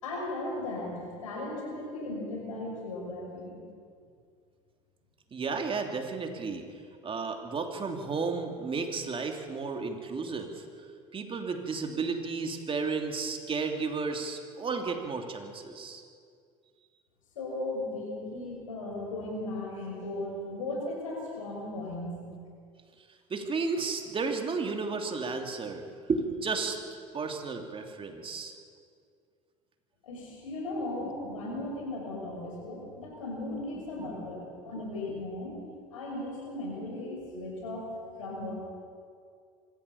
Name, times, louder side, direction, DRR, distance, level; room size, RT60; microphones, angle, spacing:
voice 1, 0.0-3.6 17.3-22.2 30.0-35.6 35.9-37.9 38.2-38.5, left 2 dB, 85° left, -1 dB, 6.1 m, -36 dB
voice 2, 5.3-6.6 7.0-10.6 11.1-16.0 23.3-26.8 27.1-28.5, right 4 dB, 30° right, 4 dB, 2.9 m, -33 dB
25.0 x 14.5 x 7.0 m, 2.2 s
hypercardioid pair, 75°, 17 cm